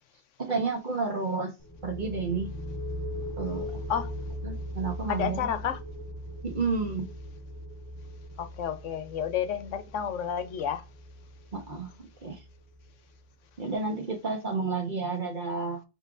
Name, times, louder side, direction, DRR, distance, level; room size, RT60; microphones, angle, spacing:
voice 1, 0.4-1.5 1.8-2.5 3.4-3.7 4.4-5.5 6.4-7.1 11.5-11.9 12.2-12.4 13.6-15.8, right 4 dB, 40° right, 1.2 m, -31 dB
sound 1, 1.6-13.1, equal, 30° left, 0.4 m, -39 dB
voice 2, 5.1-5.8 8.4-10.8, left 8 dB, 85° left, 1.0 m, -31 dB
5.2 x 3.0 x 2.5 m
omnidirectional pair, 1.2 m